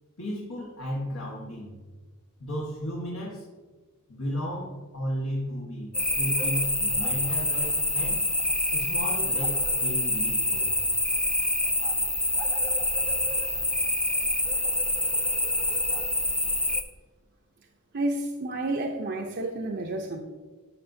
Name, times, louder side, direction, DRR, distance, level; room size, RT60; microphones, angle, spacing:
voice 1, 0.2-1.7 2.4-3.4 4.1-8.2 8.7-10.6, equal, 75° left, -5 dB, 1.5 m, -34 dB
sound 1, 5.9-16.8, left 1 dB, 5° left, 0.4 m, -26 dB
voice 2, 17.9-20.2, right 2 dB, 50° right, 1 dB, 0.7 m, -30 dB
12.5 x 5.8 x 2.7 m, 1.3 s
head